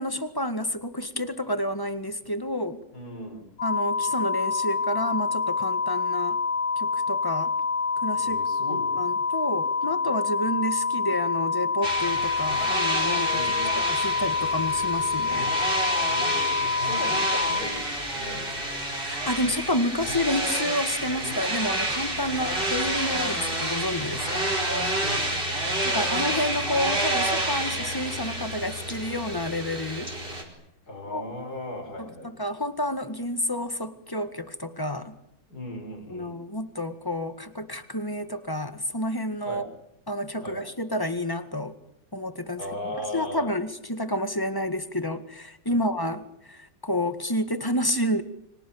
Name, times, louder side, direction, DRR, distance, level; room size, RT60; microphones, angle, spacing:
voice 1, 0.0-2.8 3.6-6.4 6.8-7.5 8.0-8.4 8.7-13.5 13.9-15.5 18.9-24.6 25.8-30.1 31.1-31.2 32.0-35.2 36.1-39.6 40.1-41.7 42.1-42.6 43.1-48.2, left 1 dB, 10° left, 10 dB, 1.8 m, -30 dB
voice 2, 2.9-3.5 8.1-9.0 13.3-13.8 16.1-18.6 24.7-25.4 25.9-26.4 30.9-32.3 35.5-36.4 39.5-39.7 40.4-40.6 42.6-43.5 45.7-45.9, left 1 dB, 55° left, 6 dB, 5.7 m, -37 dB
sound 1, 3.6-17.6, left 4 dB, 85° left, 6.4 m, -27 dB
sound 2, 11.8-30.4, right 1 dB, 25° right, 5.4 m, -29 dB
29.5 x 25.5 x 7.3 m, 0.79 s
omnidirectional pair, 2.0 m